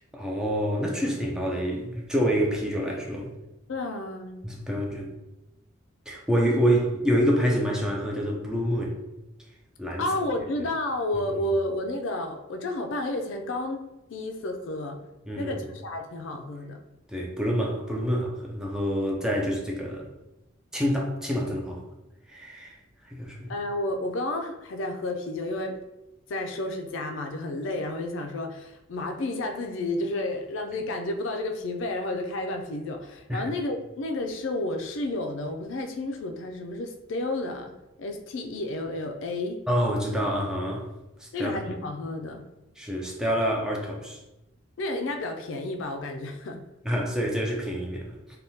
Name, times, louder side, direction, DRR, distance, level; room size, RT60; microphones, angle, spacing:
voice 1, 0.1-3.3 4.4-5.1 6.1-9.0 9.8-10.3 15.3-15.6 17.1-20.1 20.7-21.8 22.3-22.8 23.1-23.5 33.3-33.5 39.7-40.9 41.2-41.8 42.8-44.2 46.8-48.2, equal, 5° right, -2 dB, 0.4 m, -27 dB
voice 2, 3.7-4.4 10.0-13.8 14.1-15.0 15.4-16.8 23.5-25.8 26.3-39.6 41.3-42.4 44.8-46.6, left 2 dB, 65° left, 5 dB, 0.4 m, -31 dB
3.4 x 2.2 x 2.7 m, 0.97 s
head